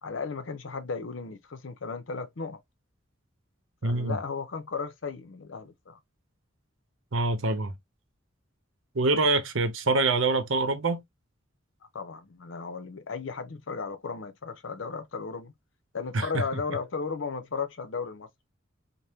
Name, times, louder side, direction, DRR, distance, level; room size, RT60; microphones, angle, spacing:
voice 1, 0.0-2.6 3.8-6.0 11.9-15.5 15.9-18.3, left 5 dB, 65° left, 0.7 m, -35 dB
voice 2, 3.8-4.2 7.1-7.7 8.9-11.0 16.1-16.4, right 3 dB, 70° right, 0.8 m, -25 dB
3.5 x 2.1 x 2.7 m
head